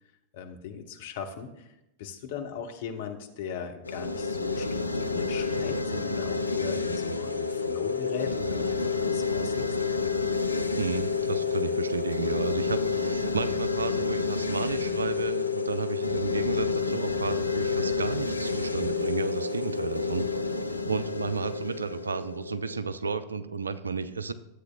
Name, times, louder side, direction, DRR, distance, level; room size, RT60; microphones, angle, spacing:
voice 1, 0.3-1.7 2.0-4.7 4.9-9.8, left 7 dB, 55° left, 4 dB, 1.1 m, -38 dB
sound 1, 3.8-22.9, left 4 dB, 80° left, 0.4 m, -29 dB
voice 2, 10.8-20.3 20.8-24.3, right 5 dB, 75° right, 13 dB, 0.4 m, -32 dB
13.0 x 8.1 x 2.4 m, 0.89 s
figure-of-eight pair, 90°, 0 cm